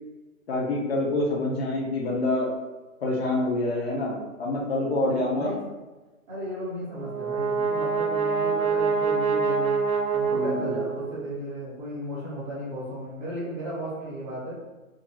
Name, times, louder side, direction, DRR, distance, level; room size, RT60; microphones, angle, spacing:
voice 1, 0.5-2.5 3.0-5.5 10.3-10.8, left 2 dB, 45° left, -3 dB, 0.6 m, -26 dB
voice 2, 6.3-9.8 10.1-14.5, equal, 20° right, -10 dB, 1.0 m, -35 dB
Brass instrument, 6.9-11.3, right 5 dB, 90° right, 0.6 m, -26 dB
2.4 x 2.2 x 2.9 m, 1.2 s
hypercardioid pair, 145°, 41 cm